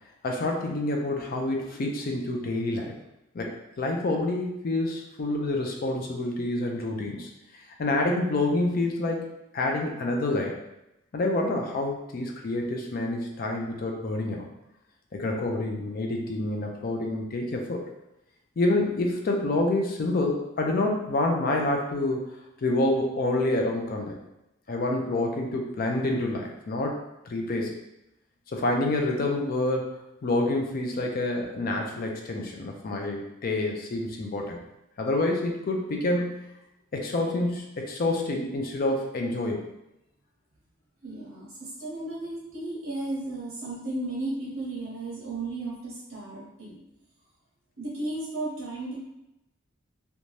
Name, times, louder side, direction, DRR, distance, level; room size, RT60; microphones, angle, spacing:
voice 1, 0.2-3.0 3.3-7.3 7.8-9.2 9.5-10.6 11.1-14.5 15.1-17.8 18.6-22.3 22.6-24.2 24.7-27.0 27.3-27.8 28.5-34.6 35.0-36.5 36.9-39.7, left 2 dB, 45° left, 1 dB, 0.4 m, -27 dB
voice 2, 41.0-46.8 47.8-49.0, right 2 dB, 65° right, -5 dB, 0.7 m, -34 dB
2.6 x 2.2 x 3.1 m, 0.89 s
head